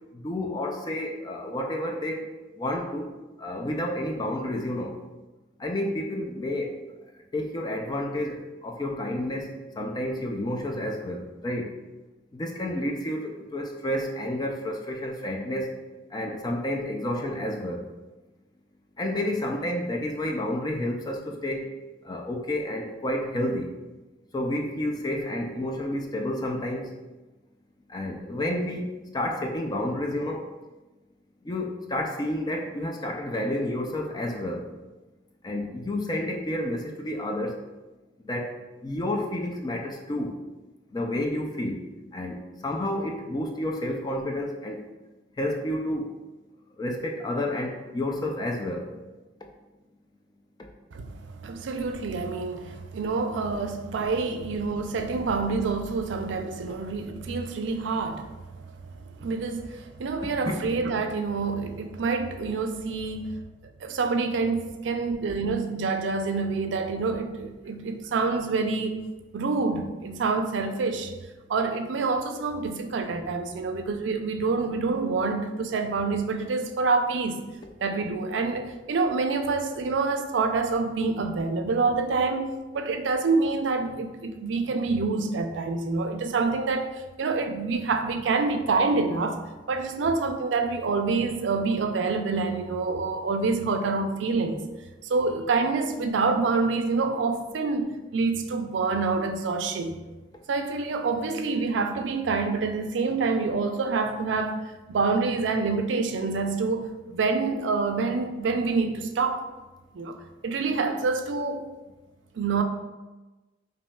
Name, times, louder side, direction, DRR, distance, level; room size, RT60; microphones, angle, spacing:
voice 1, 0.1-2.2 2.6-3.1 3.4-5.0 5.6-6.8 7.3-11.7 12.3-15.7 16.1-17.8 19.0-21.7 22.0-23.7 24.3-26.9 27.9-30.5 31.4-34.6 35.4-37.6 38.2-40.4 40.9-41.8 42.1-44.8 45.4-46.2 46.8-48.9 50.6-50.7 60.5-60.6, left 1 dB, 20° left, 0.3 m, -30 dB
voice 2, 50.9-58.6 59.2-63.3 63.8-69.0 69.3-71.1 71.5-77.4 77.8-89.4 89.7-94.6 95.1-100.0 100.5-109.4 109.9-110.2 110.4-111.7 112.3-112.6, right 4 dB, 75° right, 0.4 m, -27 dB
5.2 x 2.7 x 2.2 m
head